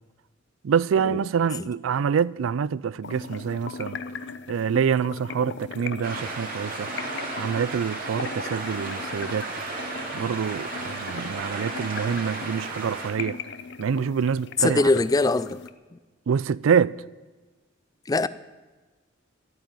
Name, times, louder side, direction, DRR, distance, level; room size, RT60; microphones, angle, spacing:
voice 1, 0.6-4.0 4.5-6.9 7.4-9.5 10.1-13.4 13.8-14.8 16.3-17.0, right 7 dB, 90° right, 0.4 m, -26 dB
sound 1, 3.0-15.7, left 5 dB, 60° left, 0.7 m, -39 dB
sound 2, 6.0-13.1, right 3 dB, 45° right, 2.9 m, -34 dB
voice 2, 14.6-15.6 15.9-16.0 18.1-18.3, left 2 dB, 20° left, 0.4 m, -22 dB
13.0 x 9.2 x 9.1 m
head